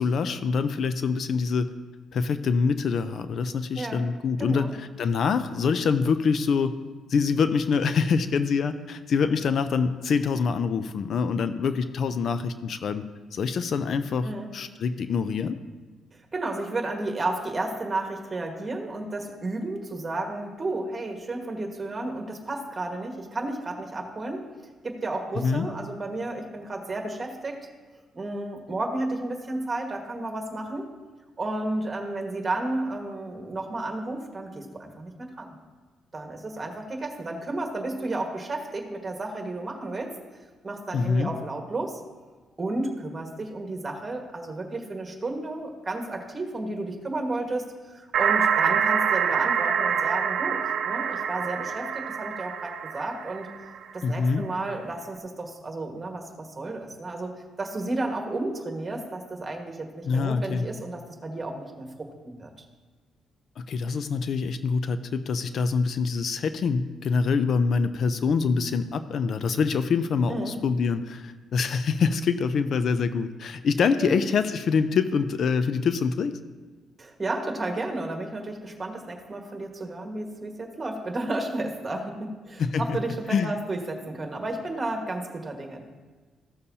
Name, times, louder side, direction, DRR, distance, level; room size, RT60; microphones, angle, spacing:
voice 1, 0.0-1.7 2.1-6.7 7.1-13.0 13.3-15.6 25.4-25.7 40.9-41.3 54.0-54.4 60.0-60.7 63.6-76.3 82.6-83.0 83.3-83.5, left 5 dB, 60° left, 11 dB, 0.4 m, -25 dB
voice 2, 3.7-4.1 4.4-4.7 14.2-14.5 16.1-24.5 24.8-27.6 28.1-30.9 31.4-35.5 36.1-40.1 40.6-42.0 42.6-53.5 53.9-62.5 70.3-70.5 74.0-74.2 77.0-85.8, right 2 dB, 25° right, 2 dB, 1.6 m, -32 dB
sound 1, 48.1-53.8, right 7 dB, 70° right, 0.6 m, -26 dB
14.5 x 6.8 x 2.8 m, 1.3 s
cardioid pair, 90°, 0 cm